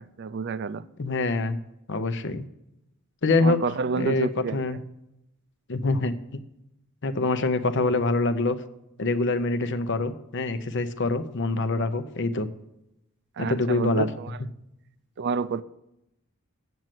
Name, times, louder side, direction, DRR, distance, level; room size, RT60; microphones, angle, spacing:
voice 1, 0.0-0.8 3.4-4.8 13.4-14.4 15.2-15.6, right 5 dB, 50° right, 16 dB, 0.4 m, -29 dB
voice 2, 1.0-1.6 1.9-2.5 3.2-3.6 4.0-4.8 5.7-6.4 7.0-8.6 9.0-12.5 13.4-14.1, left 3 dB, 55° left, 11 dB, 0.7 m, -25 dB
7.9 x 7.6 x 7.5 m, 0.86 s
head